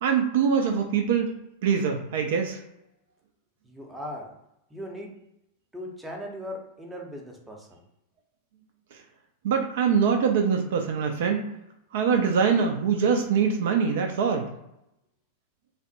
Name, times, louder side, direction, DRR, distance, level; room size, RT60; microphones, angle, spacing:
voice 1, 0.0-1.3 1.6-2.6 9.4-11.4 11.9-14.5, right 6 dB, 55° right, 4 dB, 0.4 m, -23 dB
voice 2, 3.6-4.3 4.7-5.1 5.7-7.8, equal, 5° right, 0 dB, 0.7 m, -38 dB
3.2 x 2.1 x 2.7 m, 0.84 s
figure-of-eight pair, 90°, 0 cm